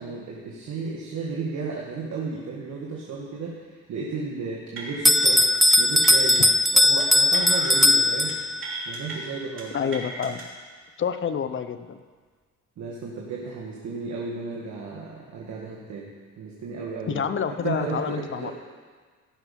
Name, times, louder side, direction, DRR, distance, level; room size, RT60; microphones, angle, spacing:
voice 1, 0.0-5.5 5.8-6.5 6.7-9.8 12.8-17.2 17.6-18.5, right 4 dB, 65° right, -3 dB, 1.8 m, -34 dB
sound 1, 4.8-5.3 5.5-5.8 6.0-6.4 7.0-7.9 8.1-8.3 8.6-9.1 9.6-10.4, right 3 dB, 45° right, 3.1 m, -36 dB
Bell, 5.0-8.8, equal, ahead, 0.3 m, -19 dB
voice 2, 9.7-10.4 11.0-12.0 17.1-18.5, left 7 dB, 40° left, 11 dB, 0.8 m, -28 dB
16.5 x 6.2 x 5.4 m, 1.5 s
cardioid pair, 90°, 30 cm